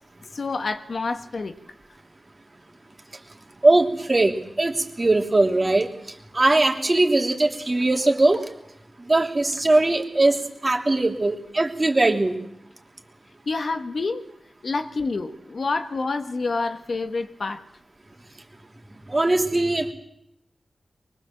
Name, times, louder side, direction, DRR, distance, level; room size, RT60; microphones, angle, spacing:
voice 1, 0.3-1.5 13.5-14.3 14.6-17.6, left 3 dB, 60° left, 7 dB, 1.6 m, -28 dB
voice 2, 3.6-5.9 6.3-8.4 9.1-12.3 19.1-19.9, right 2 dB, 30° right, 3 dB, 3.1 m, -20 dB
24.0 x 22.5 x 7.5 m, 0.81 s
wide cardioid pair, 100°, 0 cm